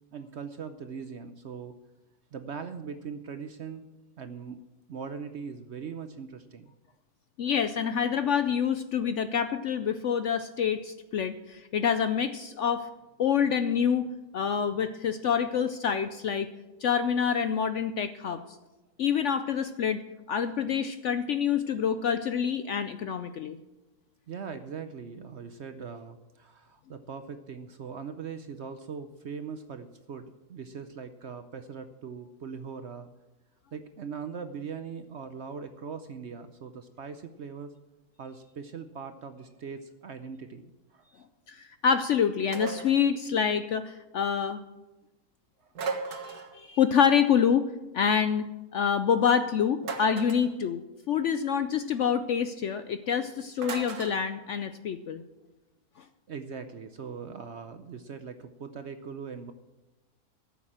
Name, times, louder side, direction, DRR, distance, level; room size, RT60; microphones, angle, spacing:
voice 1, 0.1-1.7 2.3-3.9 4.2-4.6 4.9-6.7 24.3-33.1 33.7-37.7 38.2-41.3 45.6-45.7 56.3-59.5, right 6 dB, 60° right, 9 dB, 0.8 m, -40 dB
voice 2, 7.4-12.9 13.2-16.5 16.8-18.4 19.0-20.0 20.3-23.6 41.5-44.6 46.1-50.8 51.1-55.2, left 7 dB, 65° left, 10 dB, 0.7 m, -27 dB
sound 1, 42.5-43.0 45.7-46.6 49.8-50.5 53.6-54.2, right 4 dB, 75° right, 1.8 m, -35 dB
14.0 x 7.3 x 7.3 m, 1.1 s
omnidirectional pair, 1.7 m